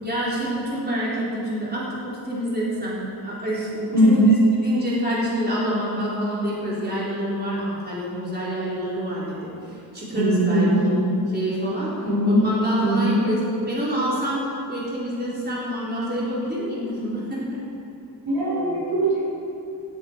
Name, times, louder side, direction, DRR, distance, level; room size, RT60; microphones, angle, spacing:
voice 1, 0.0-4.3 4.6-10.9 11.3-11.9 12.2-14.4 14.7-17.4, equal, 25° right, -8 dB, 4.3 m, -27 dB
voice 2, 3.9-4.4 10.1-11.2 12.0-12.4 12.8-13.2 18.3-19.2, right 1 dB, 60° right, -5 dB, 4.4 m, -20 dB
16.5 x 14.0 x 4.7 m, 2.6 s
wide cardioid pair, 115°, 40 cm